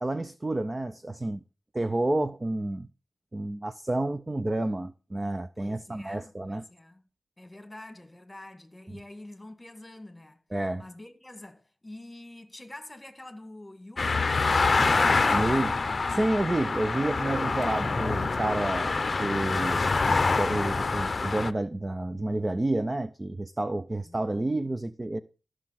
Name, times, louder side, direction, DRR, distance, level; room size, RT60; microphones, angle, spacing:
voice 1, 0.0-1.4 1.7-2.9 3.3-6.6 8.9-9.0 10.5-10.8 15.3-15.8 16.1-18.9 19.2-19.9 20.4-25.2, right 2 dB, 25° right, 0.4 m, -29 dB
voice 2, 5.6-7.0 7.4-10.4 10.8-14.2 24.0-24.8, left 1 dB, 10° left, 1.8 m, -47 dB
sound 1, 14.0-21.5, left 4 dB, 40° left, 0.7 m, -26 dB
14.0 x 6.2 x 5.7 m
wide cardioid pair, 120°, 0 cm